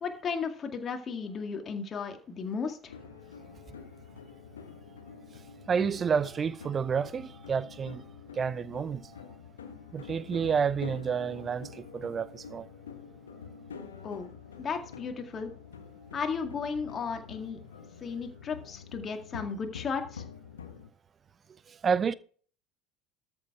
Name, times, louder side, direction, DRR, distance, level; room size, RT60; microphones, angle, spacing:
voice 1, 0.0-2.9 14.0-14.3 14.6-15.5 16.1-17.6 18.0-20.2, left 5 dB, 35° left, 2.1 m, -34 dB
sound 1, 2.9-20.9, left 6 dB, 80° left, 1.2 m, -47 dB
voice 2, 5.7-8.1 8.3-9.2 9.9-12.7 21.7-22.1, right 6 dB, 30° right, 0.8 m, -30 dB
13.5 x 7.1 x 4.9 m
figure-of-eight pair, 70°, 0 cm